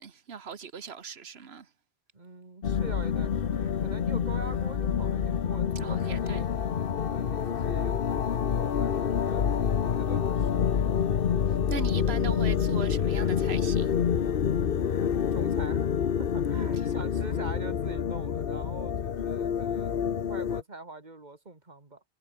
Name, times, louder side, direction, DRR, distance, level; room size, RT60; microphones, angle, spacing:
voice 1, 0.0-1.7 5.7-6.5 11.7-13.9, right 6 dB, 70° right, 1.6 m, -39 dB
voice 2, 2.1-6.5 7.1-10.7 14.9-22.0, right 3 dB, 40° right, 2.4 m, -44 dB
sound 1, 2.6-20.6, left 7 dB, 60° left, 1.1 m, -27 dB
omnidirectional pair, 1.1 m